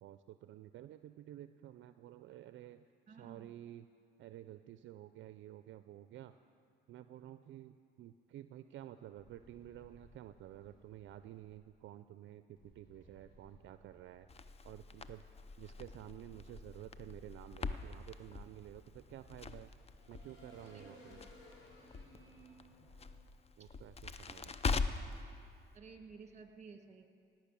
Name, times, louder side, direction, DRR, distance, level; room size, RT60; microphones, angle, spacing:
voice 1, 0.0-3.9 4.2-6.3 6.9-14.3 14.6-15.2 15.6-19.7 20.1-21.2 23.6-24.8, right 12 dB, 70° right, 11 dB, 0.4 m, -52 dB
voice 2, 3.1-3.5 20.7-21.3 23.6-23.7 25.7-27.1, right 5 dB, 35° right, 5 dB, 1.6 m, -55 dB
sound 1, 9.2-11.5 12.6-15.1 15.6-24.4, left 1 dB, 85° left, 3.6 m, -62 dB
Crackle, 14.3-25.2, left 4 dB, 30° left, 0.5 m, -43 dB
17.5 x 6.0 x 8.4 m, 2.3 s
cardioid pair, 90°, 20 cm